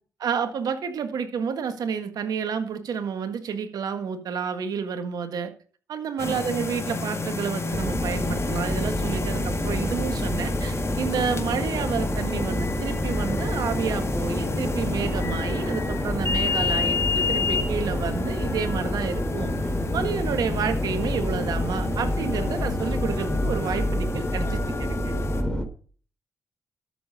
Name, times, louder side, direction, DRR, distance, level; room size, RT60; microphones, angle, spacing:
voice 1, 0.2-5.5 5.9-19.5 19.9-25.2, right 6 dB, 70° right, 8 dB, 1.7 m, -30 dB
sound 1, 6.2-25.4, left 4 dB, 40° left, 2.0 m, -31 dB
sound 2, 7.7-25.7, left 1 dB, 10° left, 3.1 m, -28 dB
13.0 x 7.1 x 5.0 m, 0.42 s
hypercardioid pair, 45°, 7 cm